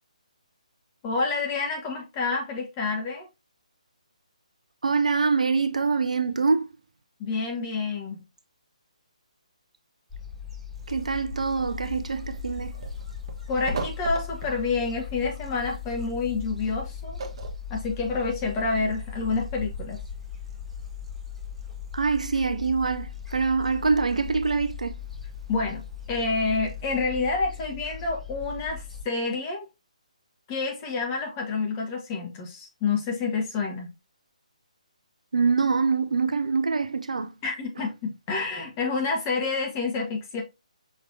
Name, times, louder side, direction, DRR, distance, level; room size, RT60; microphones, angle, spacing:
voice 1, 1.0-3.3 7.2-8.2 13.5-17.2 17.7-20.0 25.5-25.8 26.1-29.7 30.5-33.9 37.4-40.4, left 4 dB, 25° left, 1.4 m, -28 dB
voice 2, 4.8-6.7 10.9-12.7 21.9-24.9 35.3-37.3, right 4 dB, 70° right, 0.6 m, -24 dB
Gull seagull, 10.1-29.0, left 7 dB, 5° left, 1.8 m, -39 dB
sound 1, 10.7-27.0, right 2 dB, 45° right, 1.1 m, -42 dB
5.8 x 3.3 x 2.6 m
figure-of-eight pair, 145°, 4 cm